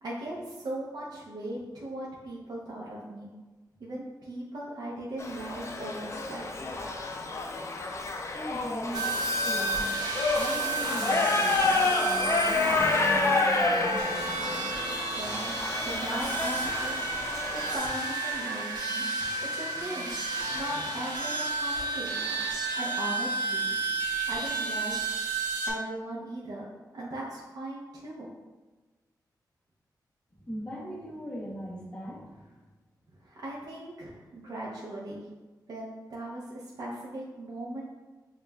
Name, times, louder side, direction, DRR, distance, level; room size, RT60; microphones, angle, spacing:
voice 1, 0.0-3.3 3.8-6.7 15.2-15.5 15.8-17.0 17.5-19.0 19.5-20.1 20.5-22.2 22.8-23.7 24.3-24.9 25.6-26.7 26.9-28.3 33.2-35.2 35.7-37.8, right 1 dB, 60° right, -5 dB, 0.6 m, -38 dB
Shout / Livestock farm animals working animals, 5.2-17.8, left 3 dB, 40° left, 0.4 m, -29 dB
voice 2, 8.0-14.6 30.4-32.6, equal, 15° left, -6 dB, 0.8 m, -40 dB
sound 1, 8.9-25.7, right 2 dB, 85° right, 0.8 m, -31 dB
7.0 x 2.4 x 2.2 m, 1.2 s
wide cardioid pair, 160°, 7 cm